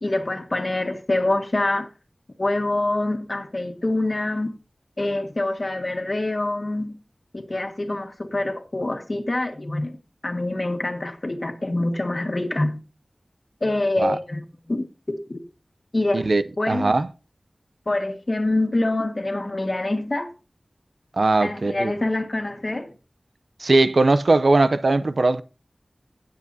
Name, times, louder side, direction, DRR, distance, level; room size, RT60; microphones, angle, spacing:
voice 1, 0.0-1.9 2.4-4.5 5.0-7.0 7.3-10.0 10.2-12.8 13.6-15.4 15.9-16.3 16.6-16.9 17.9-20.3 21.4-22.9, left 2 dB, 50° left, 1.6 m, -25 dB
voice 2, 16.1-17.1 21.2-21.9 23.6-25.4, right 2 dB, 75° right, 0.6 m, -19 dB
17.0 x 7.4 x 2.7 m
wide cardioid pair, 45°, 0 cm